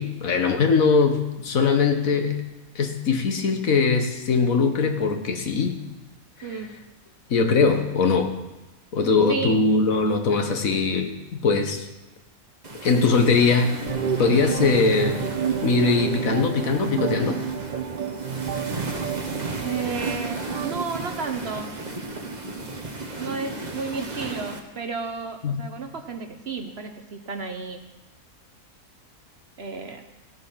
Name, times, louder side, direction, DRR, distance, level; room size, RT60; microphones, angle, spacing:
voice 1, 0.0-2.4 2.7-5.8 7.3-8.3 8.9-11.1 11.4-11.9 12.8-13.8 14.2-15.3 15.6-17.4 25.4-25.5, left 4 dB, 70° left, 6 dB, 1.6 m, -21 dB
voice 2, 6.4-6.8 9.3-9.6 19.6-21.8 23.2-27.8 29.6-30.0, right 4 dB, 50° right, 6 dB, 1.0 m, -32 dB
sound 1, 12.6-24.6, right 2 dB, 30° right, 1.3 m, -34 dB
sound 2, 13.9-20.8, right 8 dB, 80° right, 0.4 m, -30 dB
16.0 x 7.8 x 5.7 m, 1.0 s
omnidirectional pair, 1.5 m